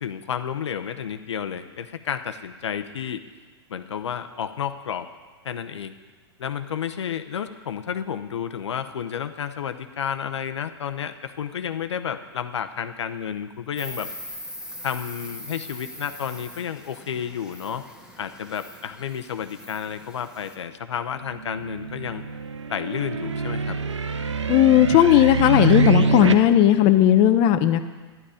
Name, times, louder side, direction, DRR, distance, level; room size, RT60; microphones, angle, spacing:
voice 1, 0.0-3.2 3.7-5.1 5.4-5.9 6.4-14.1 14.8-17.8 18.2-22.2 22.7-23.8, left 8 dB, 75° left, 9 dB, 0.8 m, -31 dB
Insect, 13.8-20.6, left 1 dB, 5° right, 1.5 m, -41 dB
sound 1, 21.4-26.3, right 4 dB, 90° right, 0.8 m, -25 dB
voice 2, 24.5-27.8, left 11 dB, 35° left, 8 dB, 0.7 m, -16 dB
12.0 x 11.0 x 5.0 m, 1.3 s
hypercardioid pair, 115°, 15 cm